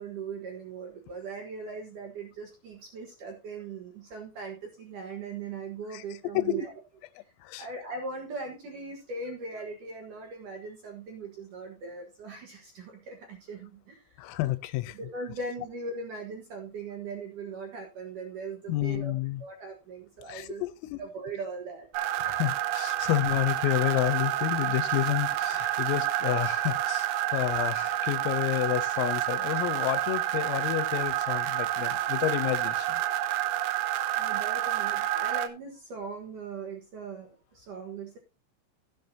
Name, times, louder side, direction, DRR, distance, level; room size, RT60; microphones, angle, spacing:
voice 1, 0.0-6.7 7.6-14.3 14.9-19.1 19.4-20.6 21.0-22.1 34.2-38.2, right 4 dB, 65° right, 2.0 m, -39 dB
voice 2, 14.2-15.0 18.7-19.4 20.3-21.0 22.2-33.0, left 16 dB, 85° left, 3.4 m, -30 dB
sound 1, 21.9-35.5, right 13 dB, 85° right, 2.5 m, -29 dB
15.5 x 7.7 x 2.7 m
omnidirectional pair, 6.0 m